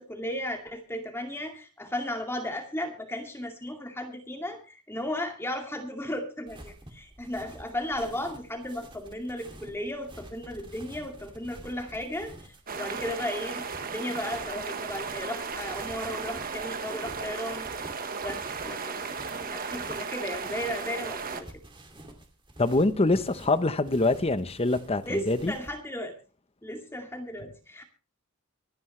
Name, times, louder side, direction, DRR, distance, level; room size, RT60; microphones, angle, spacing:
voice 1, 0.0-17.7 18.2-21.5 25.1-26.1 26.6-27.8, left 1 dB, 10° left, 2.2 m, -35 dB
sound 1, 6.5-25.7, right 1 dB, 20° right, 2.4 m, -49 dB
sound 2, 12.7-21.4, right 5 dB, 40° right, 1.3 m, -35 dB
voice 2, 22.6-25.5, left 2 dB, 25° left, 0.9 m, -25 dB
25.5 x 9.6 x 3.2 m
head